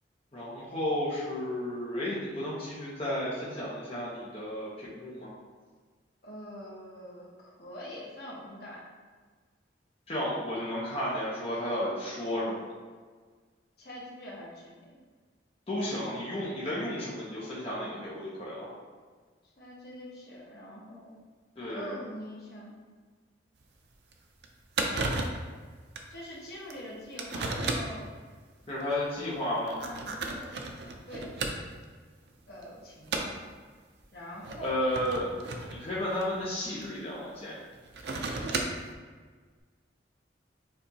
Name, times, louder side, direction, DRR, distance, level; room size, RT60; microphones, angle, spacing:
voice 1, 0.3-5.3 10.1-12.6 15.7-18.7 21.6-22.0 28.7-29.8 34.6-35.3 35.7-37.6, left 1 dB, 30° left, -8 dB, 0.9 m, -33 dB
voice 2, 6.2-8.8 13.8-14.9 19.6-21.1 21.7-22.8 26.1-28.1 29.2-29.4 29.7-30.6 31.1-31.3 32.5-33.3 34.1-35.4, equal, 60° left, -5 dB, 1.1 m, -44 dB
sound 1, 23.6-23.7 24.1-24.2 24.4-24.5 24.7-25.5 26.0-26.1 26.7-26.8 27.2-28.0 28.8-28.9 29.6-31.9 32.3-32.6 33.1-33.4 34.3-36.9 37.7-38.9, right 3 dB, 65° right, 0.5 m, -34 dB
6.7 x 2.6 x 2.8 m, 1.5 s
head